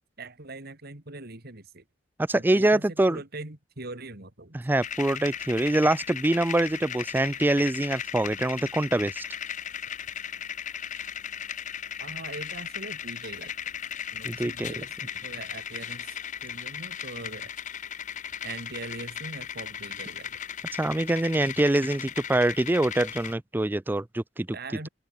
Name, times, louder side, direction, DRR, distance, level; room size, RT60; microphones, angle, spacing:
voice 1, 0.2-1.8 2.3-4.6 12.0-13.5 14.1-14.9 15.2-16.2 16.4-17.5 18.4-20.4 24.5-24.9, right 2 dB, 55° right, 3.1 m, -41 dB
voice 2, 2.2-3.2 4.5-9.2 14.2-14.7 20.8-24.5, right 1 dB, 10° right, 0.4 m, -24 dB
sound 1, 4.8-23.3, left 9 dB, 40° left, 0.7 m, -37 dB
open air
head